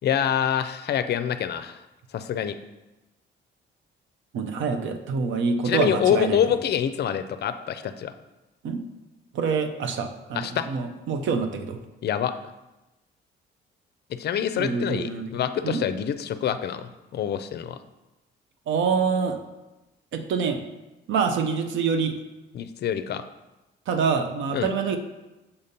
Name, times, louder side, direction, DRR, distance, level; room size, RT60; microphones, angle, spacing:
voice 1, 0.0-1.8 2.1-2.6 5.6-8.1 10.3-10.7 12.0-12.3 14.1-17.8 22.5-23.2 24.5-24.7, left 9 dB, 55° left, 11 dB, 0.4 m, -26 dB
voice 2, 4.3-6.4 8.6-8.8 9.3-11.8 14.6-15.8 18.7-19.4 20.1-20.6 21.1-22.2 23.9-25.0, right 5 dB, 75° right, 7 dB, 0.6 m, -26 dB
6.9 x 2.8 x 5.2 m, 1.0 s
cardioid pair, 90°, 20 cm